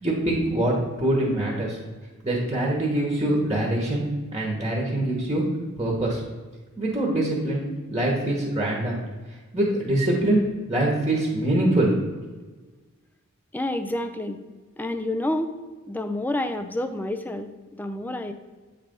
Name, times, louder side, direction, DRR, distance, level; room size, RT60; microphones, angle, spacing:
voice 1, 0.0-1.8 2.2-4.0 4.3-5.4 5.8-6.2 6.8-7.6 7.9-9.0 9.5-10.4 10.7-11.9, right 1 dB, 20° right, -2 dB, 1.1 m, -24 dB
voice 2, 13.5-14.4 14.8-15.6 15.9-18.3, left 1 dB, 10° left, 9 dB, 0.4 m, -29 dB
8.2 x 3.3 x 5.2 m, 1.3 s
head